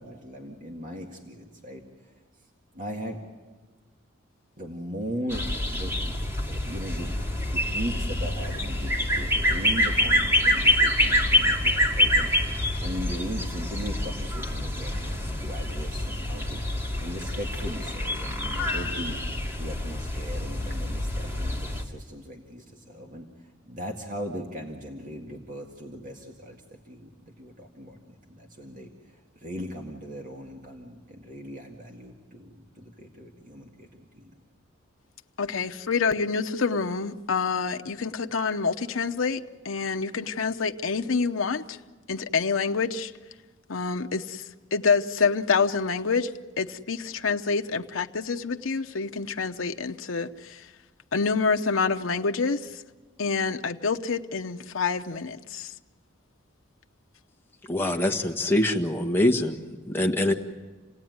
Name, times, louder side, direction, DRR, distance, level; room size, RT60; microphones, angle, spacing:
voice 1, 0.0-1.8 2.8-3.2 4.6-5.9 6.5-7.1 7.5-12.3 12.8-16.6 17.0-19.2 19.6-23.3 23.7-27.1 27.4-28.0 28.3-28.9 29.4-33.9 34.1-34.3, equal, 40° right, 2 dB, 2.0 m, -38 dB
sound 1, 5.3-21.8, left 1 dB, 15° right, 2.4 m, -26 dB
voice 2, 35.4-41.8 42.1-43.1 43.7-44.4 44.7-50.7 51.1-52.8 53.2-55.7, left 5 dB, 90° left, 5 dB, 0.8 m, -27 dB
voice 3, 57.7-59.6 59.8-60.3, left 1 dB, 10° left, 3 dB, 1.6 m, -24 dB
28.5 x 17.5 x 9.5 m, 1.3 s
head